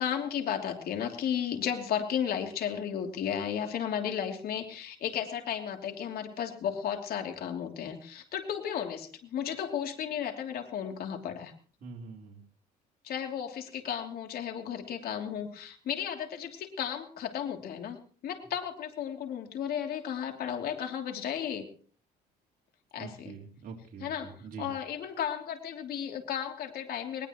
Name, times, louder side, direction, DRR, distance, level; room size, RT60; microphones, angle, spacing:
voice 1, 0.0-11.5 13.0-21.7 22.9-23.4 24.0-24.3 24.6-27.3, left 8 dB, 65° left, 4 dB, 3.0 m, -34 dB
voice 2, 11.8-12.4 23.0-24.7, right 5 dB, 55° right, -1 dB, 3.9 m, -44 dB
20.5 x 20.0 x 3.1 m, 0.43 s
cardioid pair, 110°, 17 cm